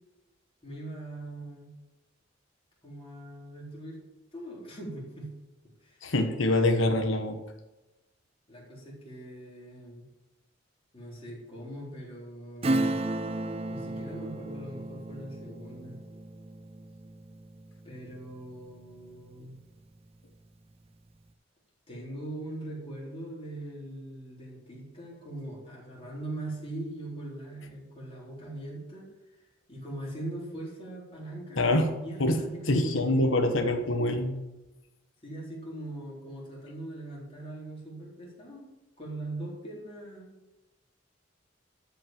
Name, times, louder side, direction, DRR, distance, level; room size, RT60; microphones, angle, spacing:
voice 1, 0.6-1.8 2.8-4.0 4.3-5.3 5.8-6.1 8.5-10.1 10.9-13.0 13.7-16.0 17.8-19.6 21.9-29.1 29.4-33.3 35.2-40.4, right 1 dB, 30° left, -4 dB, 4.0 m, -41 dB
voice 2, 6.0-7.4 31.6-31.9 32.2-32.4 32.7-34.4, left 1 dB, 90° left, 6 dB, 1.3 m, -25 dB
Acoustic guitar / Strum, 12.6-18.8 19.2-19.3, right 2 dB, 30° right, 0.6 m, -34 dB
13.0 x 5.4 x 7.5 m, 1.0 s
head